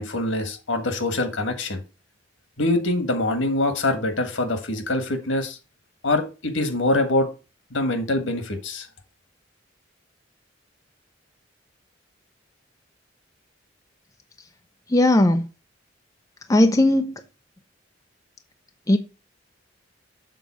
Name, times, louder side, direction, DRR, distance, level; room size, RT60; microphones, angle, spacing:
voice 1, 0.0-1.8 2.6-5.6 6.0-7.3 7.7-8.9, left 2 dB, 90° left, 1.6 m, -24 dB
voice 2, 14.9-15.4 16.5-17.2 18.9-19.0, left 1 dB, 15° left, 0.6 m, -17 dB
7.0 x 3.9 x 6.1 m
head